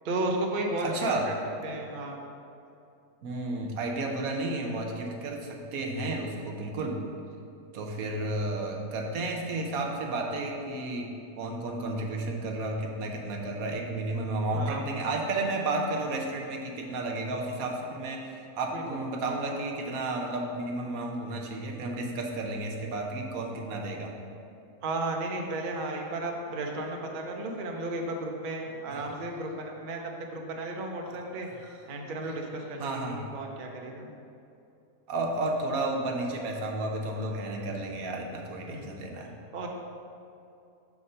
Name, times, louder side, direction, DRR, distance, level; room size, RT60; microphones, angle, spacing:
voice 1, 0.0-0.9 1.3-1.4 1.6-2.2 14.5-14.9 18.7-19.0 24.8-31.5 31.9-34.1 38.7-38.9 39.5-39.7, right 2 dB, 50° right, 1 dB, 0.6 m, -34 dB
voice 2, 0.8-1.3 3.2-7.0 7.7-24.1 28.9-29.0 31.1-31.2 32.8-33.3 35.1-39.4, right 2 dB, 75° right, 1 dB, 1.2 m, -32 dB
6.9 x 3.6 x 5.3 m, 2.7 s
omnidirectional pair, 1.5 m